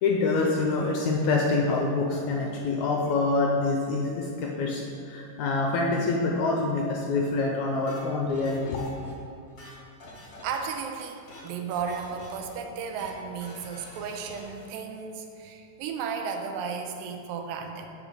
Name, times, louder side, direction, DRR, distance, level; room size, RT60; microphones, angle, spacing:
voice 1, 0.0-8.9, left 3 dB, 80° left, 0 dB, 1.7 m, -26 dB
sound 1, 7.9-9.1 9.4-10.8 11.1-11.5 11.7-12.5 12.8-13.1 13.4-14.7, left 1 dB, 40° left, 1.3 m, -47 dB
voice 2, 10.4-17.9, right 6 dB, 85° right, 4 dB, 2.4 m, -34 dB
8.8 x 5.0 x 5.0 m, 2.6 s
omnidirectional pair, 3.9 m